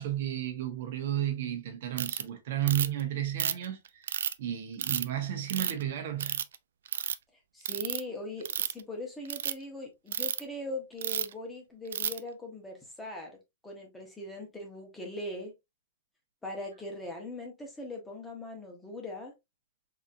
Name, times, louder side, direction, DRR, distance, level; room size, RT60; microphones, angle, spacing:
voice 1, 0.0-6.4, right 11 dB, 55° right, 1.1 m, -33 dB
Ratchet pawl, 2.0-2.2 2.7-3.0 3.4-4.3 4.8-5.0 5.5-5.8 6.2-6.5 6.9-7.1 7.6-8.0 8.4-8.8 9.2-9.5 10.1-10.4 11.0-11.3 11.9-12.2, right 9 dB, 85° right, 0.4 m, -31 dB
voice 2, 7.5-13.4 13.6-15.5 16.4-19.3, left 1 dB, 5° left, 1.0 m, -40 dB
4.1 x 2.9 x 2.5 m
supercardioid pair, 170°, 0 cm